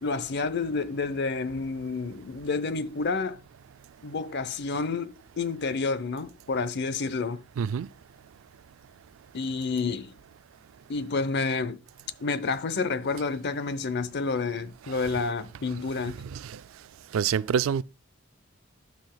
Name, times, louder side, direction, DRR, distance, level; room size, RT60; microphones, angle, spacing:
voice 1, 0.0-3.4 4.0-7.4 9.3-10.1 10.9-11.8 12.2-16.2, left 4 dB, 55° left, 0.7 m, -29 dB
voice 2, 7.6-7.9 14.9-15.1 16.0-16.6 17.1-17.8, right 7 dB, 80° right, 0.3 m, -28 dB
11.5 x 5.9 x 2.3 m
head